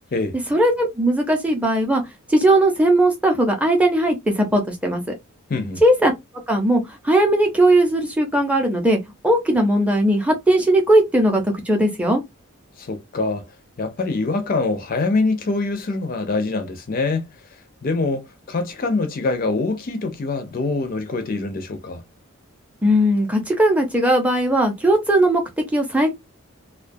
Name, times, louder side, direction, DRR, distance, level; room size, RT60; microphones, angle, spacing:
voice 1, 0.5-2.0 2.3-5.0 5.8-6.1 6.5-9.0 9.2-12.2 22.8-25.4 25.7-26.1, right 1 dB, 5° right, 0.6 m, -18 dB
voice 2, 5.5-5.8 12.8-13.4 13.8-17.3 17.8-22.0, left 3 dB, 40° left, 0.4 m, -24 dB
2.2 x 2.2 x 2.5 m
head